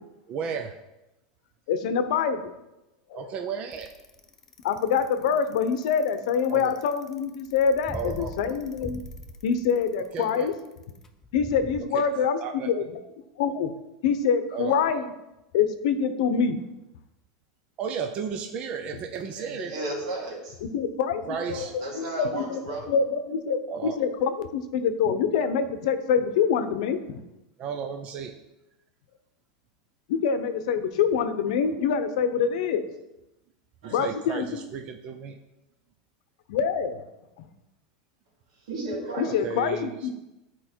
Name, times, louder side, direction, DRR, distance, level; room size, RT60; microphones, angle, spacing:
voice 1, 0.3-0.8 3.1-3.9 6.5-6.8 7.9-8.3 10.1-10.5 11.9-12.0 12.4-12.7 14.5-14.8 17.8-19.7 21.3-21.7 23.7-24.0 27.6-28.3 33.8-35.4 39.2-40.1, right 6 dB, 35° right, 5 dB, 0.6 m, -34 dB
voice 2, 1.7-2.5 3.1-3.3 4.6-9.0 9.4-10.5 11.3-12.4 12.6-13.0 13.4-13.7 14.0-15.1 15.5-16.6 20.6-21.2 21.9-27.2 30.1-32.8 33.9-34.7 36.5-37.0 37.4-37.5 39.2-40.1, left 6 dB, 70° left, 10 dB, 0.8 m, -25 dB
Bicycle, 3.7-11.8, left 1 dB, 15° left, 0.6 m, -42 dB
voice 3, 19.4-20.6 21.2-22.9 23.5-23.8 33.8-34.1 38.7-39.4, right 2 dB, 85° right, -2 dB, 3.1 m, -34 dB
10.5 x 4.5 x 4.5 m, 0.95 s
supercardioid pair, 150°, 4 cm